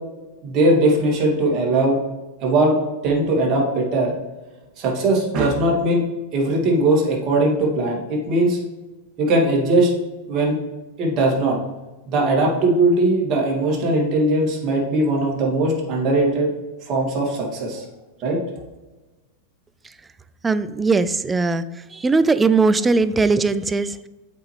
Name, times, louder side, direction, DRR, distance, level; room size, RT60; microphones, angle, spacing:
voice 1, 0.4-2.0 2.4-2.8 3.0-4.1 4.8-6.0 6.3-8.6 9.2-9.9 10.3-10.6 11.0-11.6 12.1-16.5 16.9-17.8 18.2-18.4, right 2 dB, 40° right, -1 dB, 2.3 m, -19 dB
voice 2, 20.4-24.1, right 4 dB, 15° right, 14 dB, 0.4 m, -19 dB
8.0 x 5.0 x 3.2 m, 1.1 s
hypercardioid pair, 95°, 0 cm